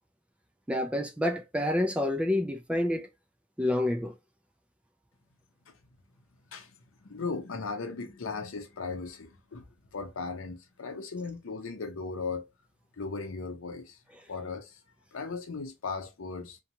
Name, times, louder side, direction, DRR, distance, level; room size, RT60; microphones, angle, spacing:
voice 1, 0.7-3.1 3.6-4.1, left 1 dB, 5° right, 0.3 m, -28 dB
voice 2, 7.0-9.6 9.9-12.5 13.0-14.0 14.3-14.8 15.1-16.6, left 4 dB, 70° left, 0.6 m, -37 dB
2.9 x 2.2 x 2.6 m
head